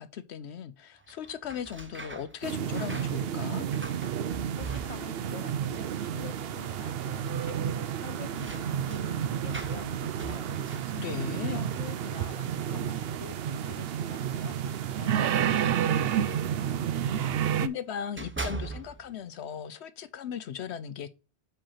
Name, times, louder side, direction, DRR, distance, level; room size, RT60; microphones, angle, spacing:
voice 1, 0.0-3.7 11.0-11.7 17.6-21.1, left 8 dB, 75° left, 0.9 m, -37 dB
sound 1, 1.0-5.4 5.6-6.3 6.6-6.7 7.8-13.2 14.1-17.6 18.0-19.2, right 3 dB, 15° right, 0.4 m, -44 dB
sound 2, 2.4-17.7, right 9 dB, 65° right, 0.8 m, -30 dB
voice 2, 4.5-7.6 8.0-10.8 11.3-14.6 14.9-16.9, left 6 dB, 35° left, 0.7 m, -47 dB
5.2 x 4.9 x 5.6 m
omnidirectional pair, 1.1 m